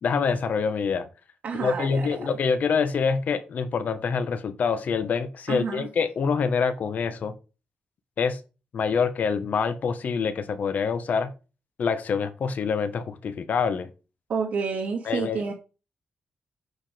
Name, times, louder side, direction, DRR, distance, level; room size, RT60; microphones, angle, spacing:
voice 1, 0.0-1.0 1.6-7.3 8.2-8.4 8.7-11.3 11.8-13.9 15.1-15.4, left 5 dB, 60° left, 10 dB, 1.4 m, -26 dB
voice 2, 1.4-2.2 5.5-5.9 14.3-15.5, right 5 dB, 70° right, 0 dB, 2.1 m, -29 dB
8.5 x 5.0 x 5.2 m, 0.31 s
wide cardioid pair, 130°, 3 cm